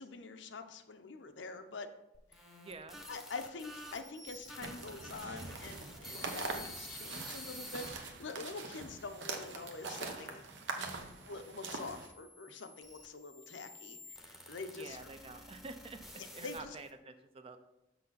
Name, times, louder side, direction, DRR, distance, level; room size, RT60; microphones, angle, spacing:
voice 1, 0.0-1.9 2.3-2.6 3.1-10.4 11.3-15.0 16.2-16.8, left 3 dB, 75° left, 8 dB, 0.6 m, -46 dB
sound 1, 2.1-7.9 8.6-10.1 10.9-16.9, equal, ahead, 0.8 m, -51 dB
voice 2, 2.6-3.0 10.8-11.1 14.7-17.6, right 3 dB, 30° right, 9 dB, 0.5 m, -49 dB
sound 2, 4.6-12.1, right 3 dB, 75° right, 0.9 m, -43 dB
6.6 x 5.9 x 4.0 m, 0.91 s
head